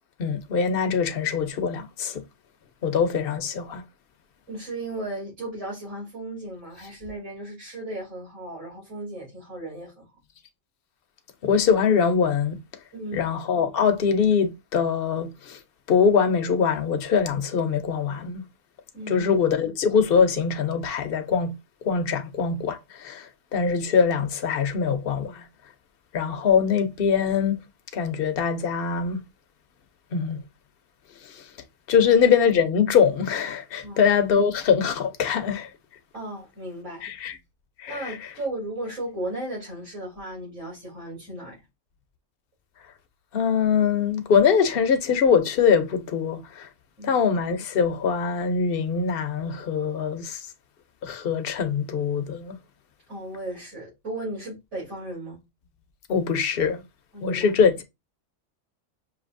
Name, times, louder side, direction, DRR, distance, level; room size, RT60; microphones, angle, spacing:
voice 1, 0.2-2.2 2.8-3.8 11.4-12.6 13.1-15.6 15.9-18.4 19.1-21.5 21.8-25.4 26.1-27.6 27.9-29.2 30.1-30.4 31.2-31.4 31.9-35.7 37.0-37.3 37.8-38.3 43.3-46.7 47.0-50.4 51.0-52.5 56.1-56.8 57.2-57.8, left 6 dB, 50° left, 0.9 m, -23 dB
voice 2, 4.5-10.1 12.9-13.3 18.9-19.4 31.9-32.1 33.8-34.0 36.1-37.1 37.9-41.5 47.0-47.2 53.1-55.4 57.1-57.5, right 1 dB, 60° right, 3.7 m, -35 dB
6.0 x 2.8 x 2.6 m
omnidirectional pair, 1.3 m